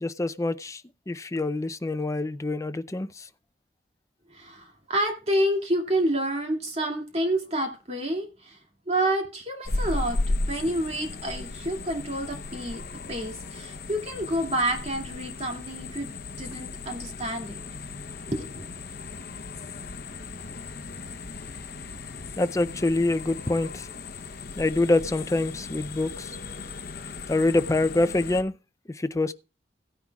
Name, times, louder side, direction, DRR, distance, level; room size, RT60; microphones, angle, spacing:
voice 1, 0.0-0.8 1.1-3.1 22.4-23.8 24.6-26.3 27.3-28.5 29.0-29.3, left 2 dB, 20° left, 0.5 m, -25 dB
voice 2, 4.3-8.6 8.9-10.2 10.5-12.8 13.1-16.1 16.4-17.6 18.3-18.7, right 1 dB, 40° right, 2.4 m, -28 dB
sound 1, 9.6-28.4, left 3 dB, 60° left, 0.8 m, -36 dB
16.0 x 10.0 x 2.3 m
head